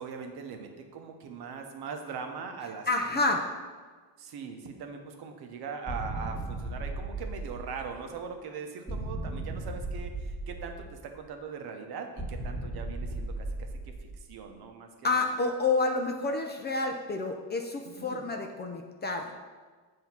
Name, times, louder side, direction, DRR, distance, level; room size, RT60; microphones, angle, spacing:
voice 1, 0.0-2.9 3.3-3.4 4.2-13.7 14.0-15.3 17.8-18.2, right 5 dB, 65° right, 5 dB, 0.9 m, -41 dB
voice 2, 2.9-3.4 15.0-19.3, left 3 dB, 25° left, 3 dB, 0.4 m, -29 dB
sound 1, 5.9-8.2 8.9-11.2 12.2-14.4, right 2 dB, 5° right, 1.5 m, -36 dB
7.5 x 2.8 x 5.9 m, 1.4 s
cardioid pair, 140°, 42 cm